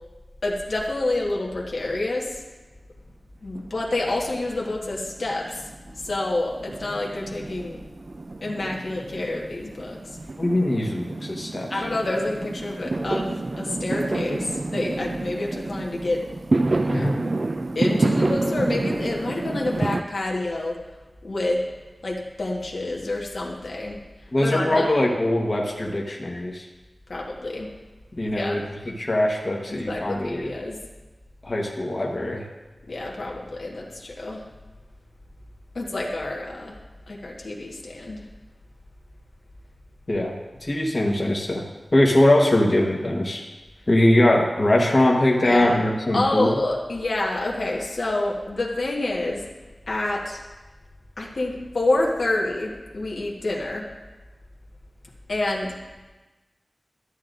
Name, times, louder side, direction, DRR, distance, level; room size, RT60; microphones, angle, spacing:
voice 1, 0.4-2.4 3.4-5.6 6.0-7.8 8.4-10.0 11.7-16.2 17.7-20.8 21.2-21.6 22.0-24.0 24.4-25.1 27.1-27.7 28.2-28.6 29.7-30.8 32.9-34.4 35.7-36.8 37.1-38.2 45.4-45.8 46.1-49.4 49.9-50.4 51.2-53.9 55.3-55.7, left 2 dB, 75° left, -2 dB, 1.2 m, -28 dB
Fireworks, 3.6-4.5 4.8-20.0, right 2 dB, 50° right, 0.3 m, -28 dB
voice 2, 10.4-11.7 16.9-17.2 24.3-26.6 28.2-28.6 29.0-30.5 31.4-32.4 40.1-40.3 40.6-41.6 41.9-43.4 43.9-46.5, left 1 dB, 40° left, -1 dB, 1.0 m, -21 dB
12.5 x 7.6 x 2.5 m, 1.2 s
wide cardioid pair, 65°, 0 cm